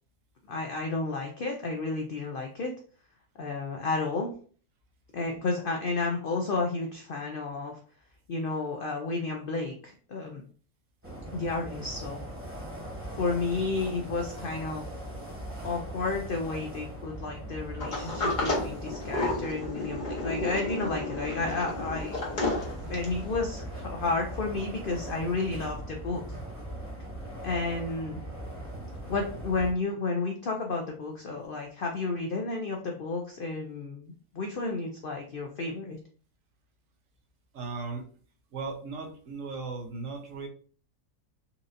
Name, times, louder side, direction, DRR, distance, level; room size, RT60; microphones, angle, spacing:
voice 1, 0.5-2.7 3.4-4.3 5.1-7.8 8.3-10.5 11.3-12.2 13.2-14.9 15.6-22.2 22.9-26.4 27.4-28.2 29.1-36.0, left 3 dB, 85° left, 1 dB, 0.4 m, -32 dB
sound 1, 11.0-29.7, right 1 dB, 10° right, 1.0 m, -40 dB
Sliding door, 17.8-23.2, left 2 dB, 35° left, 0.9 m, -32 dB
voice 2, 37.5-38.0 38.5-40.5, right 4 dB, 65° right, 2 dB, 1.1 m, -37 dB
4.2 x 2.5 x 2.6 m, 0.44 s
omnidirectional pair, 1.6 m